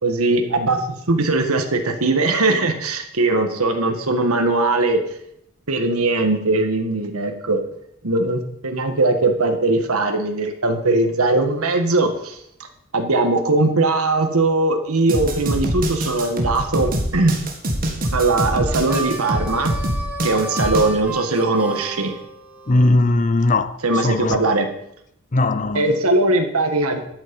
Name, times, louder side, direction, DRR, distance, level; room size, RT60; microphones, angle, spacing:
voice 1, 0.0-5.0 5.7-7.6 8.0-12.4 12.9-17.4 18.1-19.8 20.2-22.1 23.8-24.7 25.7-27.0, right 2 dB, 80° right, 1.6 m, -20 dB
sound 1, 15.1-20.9, right 1 dB, 45° right, 2.0 m, -24 dB
Harmonica, 18.7-22.9, right 2 dB, 5° right, 1.7 m, -32 dB
voice 2, 22.7-23.8 24.0-24.4 25.3-25.8, left 2 dB, 35° left, 0.7 m, -18 dB
12.5 x 8.5 x 5.3 m
head